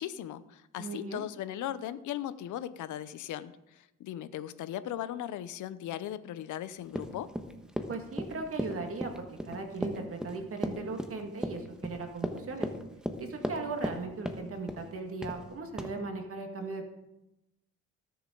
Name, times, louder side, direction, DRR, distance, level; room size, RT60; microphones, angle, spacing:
voice 1, 0.0-7.3, left 11 dB, 75° left, 15 dB, 0.8 m, -38 dB
voice 2, 0.8-1.2 7.9-12.7 13.2-16.9, right 3 dB, 50° right, 4 dB, 2.0 m, -38 dB
Run, 6.9-14.0 14.2-14.9 15.2-15.4 15.8-15.9, equal, ahead, 1.2 m, -35 dB
19.0 x 7.1 x 3.9 m, 0.91 s
cardioid pair, 90°, 30 cm